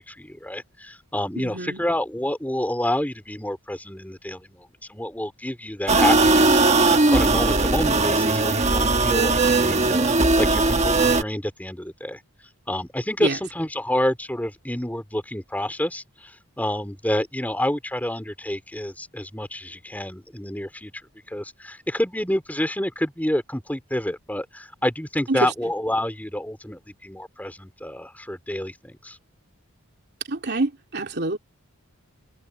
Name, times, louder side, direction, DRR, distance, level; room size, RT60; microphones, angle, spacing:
voice 1, 0.0-10.1 10.4-12.2 12.7-20.9 21.3-29.2, left 1 dB, 5° left, 3.4 m, -28 dB
voice 2, 1.4-1.8 13.2-13.4 25.3-25.5 30.3-31.4, right 2 dB, 50° right, 3.0 m, -26 dB
sound 1, 5.9-11.2, right 3 dB, 30° right, 1.4 m, -19 dB
head